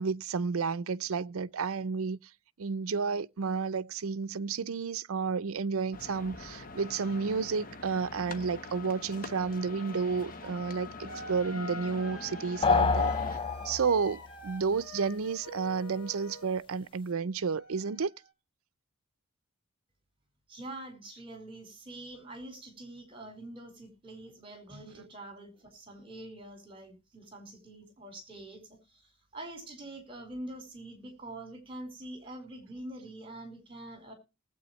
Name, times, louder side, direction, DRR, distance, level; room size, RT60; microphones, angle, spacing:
voice 1, 0.0-2.2 2.6-13.4 13.6-18.1, right 5 dB, 70° right, 0.5 m, -31 dB
sound 1, 5.9-13.4, left 3 dB, 40° left, 1.2 m, -44 dB
sound 2, 10.4-10.5 11.0-16.7 17.4-18.3, left 1 dB, 70° left, 2.8 m, -47 dB
sound 3, 12.6-14.1, left 4 dB, 25° left, 0.5 m, -26 dB
voice 2, 20.5-29.1 29.3-34.1, right 1 dB, 25° right, 4.8 m, -45 dB
19.5 x 8.5 x 3.1 m
head